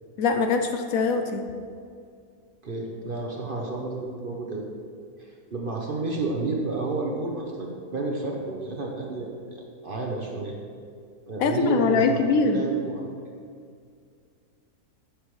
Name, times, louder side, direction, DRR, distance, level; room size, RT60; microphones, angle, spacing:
voice 1, 0.2-1.4 11.4-12.6, left 4 dB, 70° left, 6 dB, 1.0 m, -22 dB
voice 2, 2.6-4.7 5.2-10.6 11.3-13.4, right 3 dB, 45° right, -1 dB, 0.9 m, -31 dB
10.0 x 7.4 x 3.2 m, 2.3 s
omnidirectional pair, 1.6 m